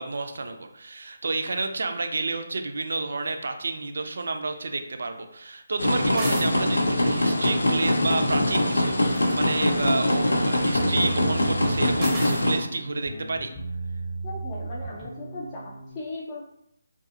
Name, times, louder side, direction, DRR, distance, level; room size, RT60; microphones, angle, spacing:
voice 1, 0.0-13.5, right 3 dB, 65° right, 7 dB, 0.3 m, -30 dB
sound 1, 5.8-12.6, left 1 dB, 80° left, 0.5 m, -23 dB
sound 2, 6.1-6.5 8.9-9.4 12.0-12.5, right 2 dB, 20° right, 0.6 m, -34 dB
sound 3, 10.7-15.9, right 3 dB, 10° left, 0.8 m, -35 dB
voice 2, 14.2-16.4, left 2 dB, 30° left, -6 dB, 0.5 m, -37 dB
2.5 x 2.3 x 2.6 m, 0.77 s
figure-of-eight pair, 150°, 0 cm